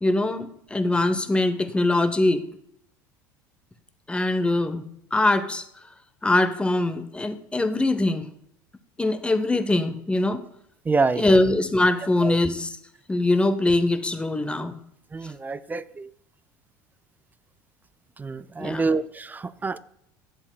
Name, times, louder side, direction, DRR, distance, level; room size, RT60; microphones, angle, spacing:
voice 1, 0.0-2.5 4.1-4.8 5.1-5.6 6.2-8.3 9.0-10.4 11.2-12.7 13.1-14.7 18.6-18.9, left 2 dB, 10° left, 0.8 m, -22 dB
voice 2, 10.9-11.3 12.2-12.4 15.1-16.1 18.2-19.8, right 4 dB, 15° right, 0.4 m, -26 dB
11.0 x 7.4 x 2.3 m
hypercardioid pair, 75°, 10 cm